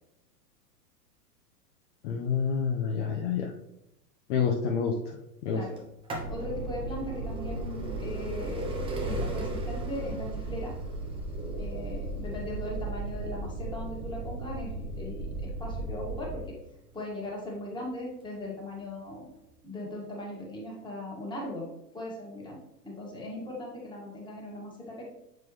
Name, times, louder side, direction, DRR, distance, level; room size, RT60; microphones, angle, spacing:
voice 1, 2.0-3.5 4.3-4.9 5.4-5.6, left 6 dB, 45° left, 0 dB, 0.8 m, -28 dB
sound 1, 5.8-17.4 18.2-18.3 19.3-19.4 19.6-19.7, right 2 dB, 10° right, 0.6 m, -40 dB
sound 2, 6.2-16.4, right 2 dB, 50° right, 1.8 m, -36 dB
voice 2, 6.3-10.7 11.6-16.6 16.9-19.3 19.6-21.7 21.9-22.6 22.8-25.1, left 1 dB, 10° left, -3 dB, 1.7 m, -39 dB
6.9 x 4.6 x 3.2 m, 0.87 s
figure-of-eight pair, 105°, 49 cm